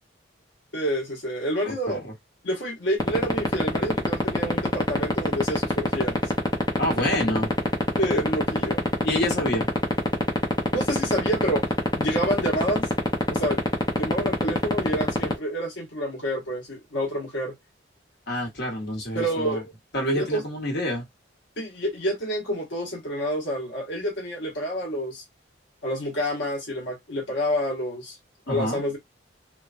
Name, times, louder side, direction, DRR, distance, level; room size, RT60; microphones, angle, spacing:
voice 1, 0.7-2.0 2.4-6.2 8.0-8.9 10.7-12.9 13.3-13.6 14.0-17.5 19.1-19.7 20.1-20.4 21.6-25.2 25.8-28.2 28.5-29.0, equal, 75° left, 0.9 m, -28 dB
voice 2, 1.6-2.1 6.8-7.5 9.0-9.7 18.3-19.6 19.9-21.1 28.5-28.8, left 1 dB, 55° left, 1.1 m, -27 dB
sound 1, 3.0-15.3, left 1 dB, 20° left, 0.7 m, -20 dB
3.1 x 2.2 x 2.4 m
head